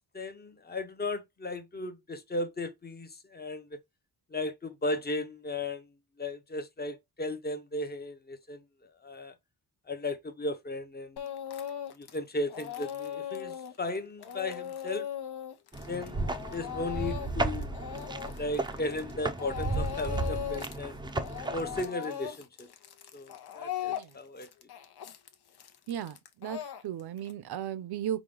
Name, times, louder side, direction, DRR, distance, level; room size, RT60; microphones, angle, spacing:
voice 1, 0.0-3.8 4.3-5.9 6.2-9.3 9.9-11.3 12.0-15.1 15.9-17.8 18.4-21.0 21.5-22.7 23.1-24.5, left 2 dB, 25° left, 0.7 m, -36 dB
Speech / Crying sobbing, 11.2-12.2 12.5-19.1 19.4-20.8 21.1-27.3, left 9 dB, 75° left, 0.8 m, -39 dB
sound 1, 15.7-21.8, right 2 dB, 10° right, 0.4 m, -34 dB
voice 2, 25.9-28.2, right 10 dB, 75° right, 0.6 m, -36 dB
4.9 x 2.3 x 3.6 m
wide cardioid pair, 120°, 39 cm